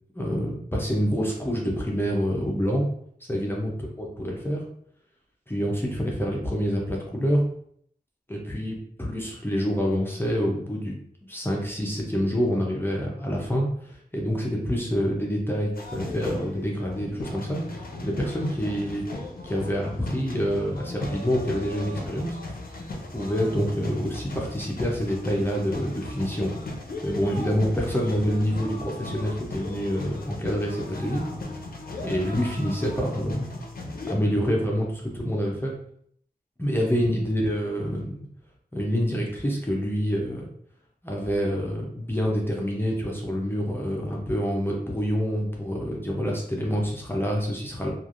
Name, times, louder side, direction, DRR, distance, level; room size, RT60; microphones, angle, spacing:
voice 1, 0.1-2.9 3.3-3.7 4.0-4.6 5.5-7.4 8.3-10.9 11.3-19.1 19.4-22.4 23.1-26.5 27.0-31.2 32.0-33.5 34.1-35.7 36.6-38.3 38.7-40.5 41.0-47.9, equal, 15° left, -3 dB, 0.6 m, -27 dB
sound 1, 15.7-34.2, left 2 dB, 60° left, 0.5 m, -37 dB
3.1 x 2.4 x 2.5 m, 0.65 s
wide cardioid pair, 90°, 17 cm